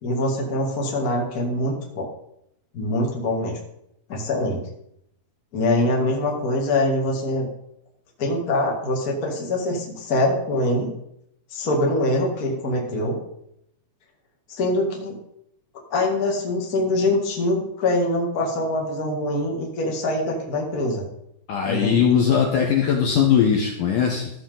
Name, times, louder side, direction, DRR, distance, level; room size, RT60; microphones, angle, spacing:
voice 1, 0.0-2.1 2.7-3.6 4.1-4.6 5.5-7.5 8.2-10.9 11.5-13.2 14.5-15.1 15.9-21.0 21.6-22.0, left 1 dB, 35° left, -1 dB, 1.7 m, -24 dB
voice 2, 21.5-24.3, left 7 dB, 65° left, 0 dB, 2.2 m, -20 dB
14.5 x 6.8 x 3.9 m, 0.76 s
omnidirectional pair, 4.7 m